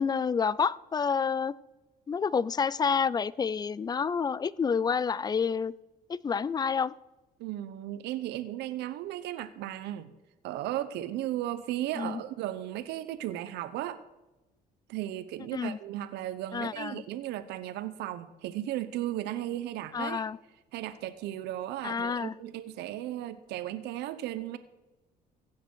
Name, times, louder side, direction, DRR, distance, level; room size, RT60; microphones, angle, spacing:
voice 1, 0.0-1.5 2.1-5.7 6.1-6.9 12.0-12.2 15.5-15.8 16.5-17.0 19.9-20.4 21.8-22.3, left 6 dB, 25° left, 21 dB, 0.4 m, -29 dB
voice 2, 7.4-10.1 10.4-14.0 14.9-20.2 20.7-24.6, right 13 dB, 85° right, 12 dB, 0.8 m, -35 dB
16.0 x 6.8 x 6.2 m, 1.1 s
cardioid pair, 110°, 17 cm